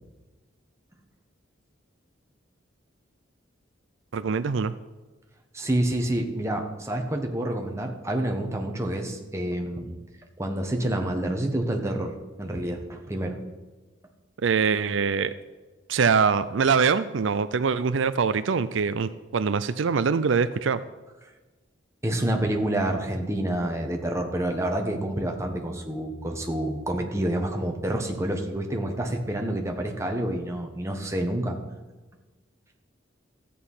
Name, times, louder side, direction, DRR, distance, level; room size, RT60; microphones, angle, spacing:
voice 1, 4.1-4.7 14.4-15.3 15.9-20.8, right 5 dB, 75° right, 14 dB, 0.5 m, -23 dB
voice 2, 5.5-10.0 10.4-13.4 22.0-31.6, right 1 dB, 15° right, 2 dB, 1.3 m, -28 dB
14.0 x 8.5 x 5.6 m, 1.2 s
head